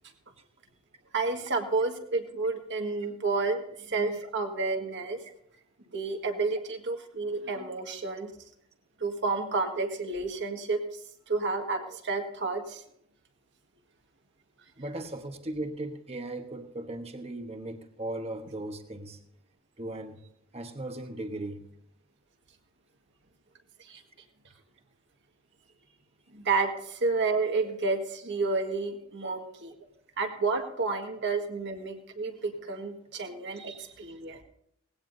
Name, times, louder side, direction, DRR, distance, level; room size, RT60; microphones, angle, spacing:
voice 1, 1.1-5.2 5.9-8.3 9.0-10.8 11.3-12.8 23.8-24.0 26.3-29.7 30.2-34.4, right 3 dB, 55° right, 4 dB, 1.8 m, -30 dB
voice 2, 14.8-19.2 19.8-20.2 20.5-21.7 29.2-29.3, right 1 dB, 30° right, 6 dB, 1.2 m, -37 dB
18.5 x 17.0 x 2.7 m, 0.71 s
head